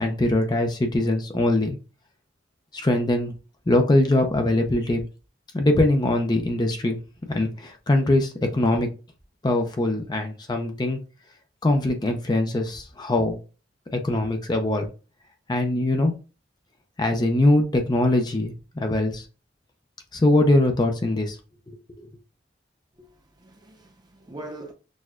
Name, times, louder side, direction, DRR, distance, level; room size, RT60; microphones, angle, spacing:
voice 1, 0.0-1.8 2.7-3.3 3.7-5.0 5.5-7.0 7.3-8.9 9.4-11.0 11.6-13.4 13.9-14.9 15.5-16.1 17.0-19.2 20.1-21.4 21.7-21.8, left 1 dB, 25° left, 0.5 m, -22 dB
voice 2, 23.0-24.7, right 2 dB, 25° right, 0.7 m, -42 dB
6.2 x 2.3 x 2.4 m
head